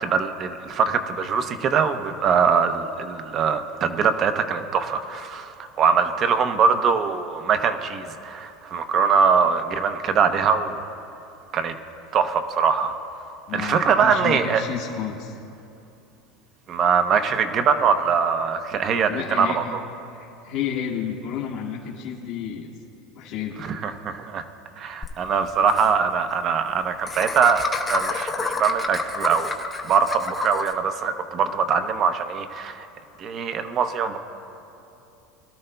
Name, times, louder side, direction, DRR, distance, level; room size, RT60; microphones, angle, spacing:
voice 1, 0.0-10.9 11.5-11.7 12.1-12.9 13.5-14.6 16.7-19.8 23.6-24.4 24.8-29.6 29.8-32.9 33.2-34.2, right 6 dB, 35° right, 8 dB, 0.7 m, -22 dB
voice 2, 13.5-15.3 19.1-19.7 20.1-22.7 23.1-23.6, left 8 dB, 55° left, -4 dB, 1.6 m, -31 dB
Laughter, 25.0-25.1 25.4-25.5 25.7-25.9 27.1-30.7, left 4 dB, 15° left, 0.8 m, -29 dB
21.5 x 12.5 x 2.3 m, 2.8 s
supercardioid pair, 140°, 0 cm